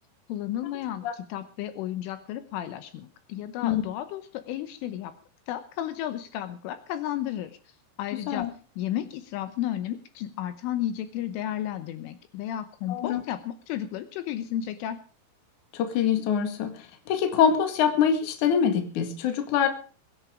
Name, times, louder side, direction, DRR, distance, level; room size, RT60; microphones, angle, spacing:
voice 1, 0.3-5.1 5.5-7.6 8.0-8.5 8.8-15.0, left 12 dB, 80° left, 11 dB, 3.2 m, -33 dB
voice 2, 12.9-13.2 15.7-19.7, left 8 dB, 55° left, 6 dB, 2.5 m, -24 dB
21.5 x 10.0 x 5.0 m, 0.40 s
omnidirectional pair, 5.9 m